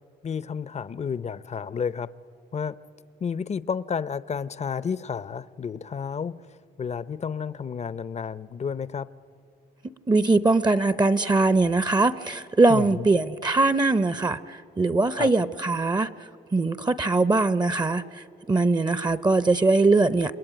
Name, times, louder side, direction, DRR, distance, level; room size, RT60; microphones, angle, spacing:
voice 1, 0.2-2.1 2.5-2.8 3.2-9.1 12.7-13.1 15.1-15.3, left 6 dB, 40° left, 16 dB, 0.7 m, -31 dB
voice 2, 10.1-16.1 16.5-18.0 18.5-20.3, right 3 dB, 25° right, 14 dB, 0.8 m, -21 dB
28.0 x 21.5 x 9.1 m, 2.9 s
cardioid pair, 75°, 18 cm